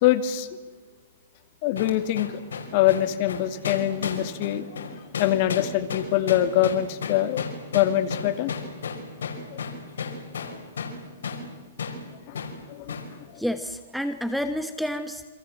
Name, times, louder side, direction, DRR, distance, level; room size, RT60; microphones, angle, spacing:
voice 1, 0.0-0.5 1.6-2.3 2.7-4.8 5.2-7.4 7.7-8.5 9.5-9.6 12.3-12.4 12.7-13.0 13.3-13.4, left 12 dB, 40° left, 10 dB, 2.1 m, -24 dB
sound 1, 1.8-11.0 11.2-11.4 11.8-12.0 12.3-12.5 12.9-13.1, left 5 dB, 80° left, 5.7 m, -33 dB
voice 2, 13.4-15.2, equal, ahead, 9 dB, 1.1 m, -29 dB
28.0 x 26.0 x 7.7 m, 1.4 s
hypercardioid pair, 150°, 0 cm